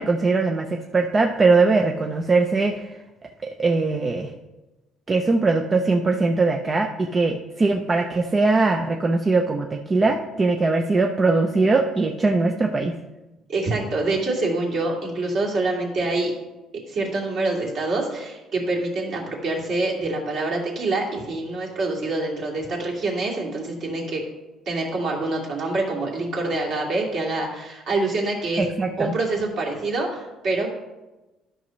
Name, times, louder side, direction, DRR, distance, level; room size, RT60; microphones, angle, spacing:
voice 1, 0.0-2.8 3.4-4.3 5.1-12.9 28.6-29.1, right 3 dB, 20° right, 3 dB, 0.5 m, -21 dB
voice 2, 13.5-16.3 16.9-24.2 24.7-28.6 29.0-30.7, right 2 dB, 45° right, -3 dB, 2.3 m, -26 dB
12.5 x 6.0 x 3.1 m, 1.1 s
cardioid pair, 165°, 0 cm